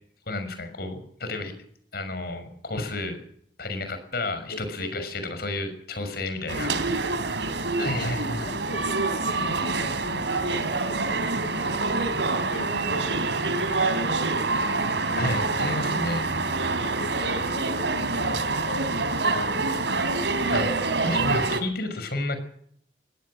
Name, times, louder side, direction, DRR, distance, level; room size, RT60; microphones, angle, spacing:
voice 1, 0.3-1.5 1.9-3.2 3.6-6.7 7.8-8.4 15.2-16.3 20.5-20.7 21.0-22.4, left 2 dB, 60° left, 9 dB, 6.2 m, -31 dB
voice 2, 4.4-5.3 6.5-7.3 7.8-12.2 12.5-14.9 16.8-20.2, left 1 dB, 90° left, 4 dB, 2.0 m, -40 dB
sound 1, 6.5-21.6, right 3 dB, 85° right, 3.3 m, -26 dB
21.5 x 17.5 x 7.6 m, 0.64 s
head